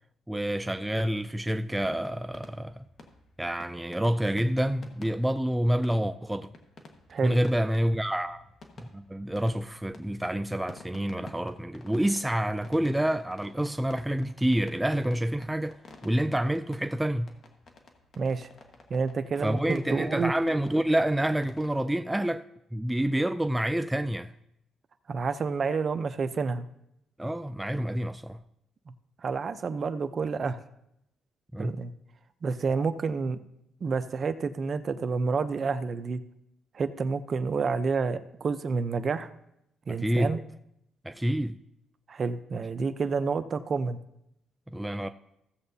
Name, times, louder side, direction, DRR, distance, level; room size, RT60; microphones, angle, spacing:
voice 1, 0.3-2.9 3.4-6.5 7.2-8.4 8.9-17.3 19.4-22.4 22.7-24.3 27.2-28.4 31.5-31.8 39.9-40.4 41.0-41.5 44.7-45.1, right 1 dB, 5° right, 0.3 m, -28 dB
sound 1, 1.9-21.7, left 3 dB, 45° left, 1.5 m, -52 dB
voice 2, 18.2-18.5 18.9-20.3 25.1-26.7 29.2-30.6 31.6-31.9 32.4-33.4 33.8-36.2 36.7-39.3 39.9-40.4 42.1-44.0, right 4 dB, 45° right, 0.7 m, -29 dB
15.5 x 7.7 x 2.8 m
cardioid pair, 95°, 0 cm